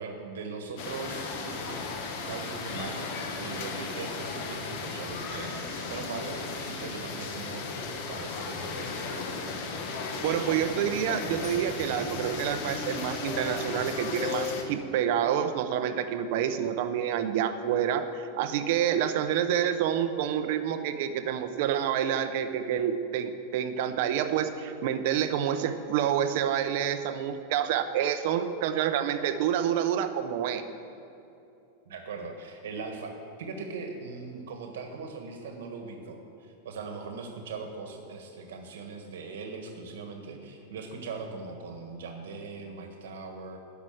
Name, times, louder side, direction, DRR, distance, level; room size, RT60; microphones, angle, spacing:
voice 1, 0.0-1.9 2.3-9.1 31.8-33.1 33.4-43.6, right 4 dB, 85° right, 3 dB, 1.6 m, -40 dB
sound 1, 0.8-14.6, left 4 dB, 40° left, 1.3 m, -35 dB
voice 2, 10.2-30.6, right 9 dB, 45° right, 10 dB, 0.7 m, -28 dB
12.5 x 5.9 x 9.1 m, 2.8 s
supercardioid pair, 180°, 0 cm